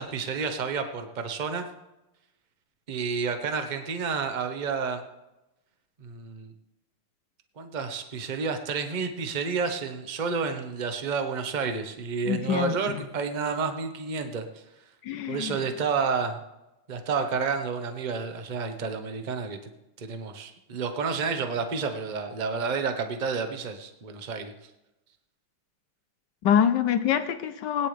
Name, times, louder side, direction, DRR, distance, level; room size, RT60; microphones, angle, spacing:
voice 1, 0.0-1.7 2.9-5.0 6.0-6.5 7.6-14.6 15.3-16.4 16.9-19.6 20.0-24.5, right 5 dB, 35° right, 6 dB, 0.7 m, -30 dB
voice 2, 12.3-13.0 15.0-15.5 26.4-27.9, left 8 dB, 70° left, 9 dB, 1.1 m, -25 dB
20.0 x 10.0 x 3.4 m, 0.96 s
omnidirectional pair, 2.4 m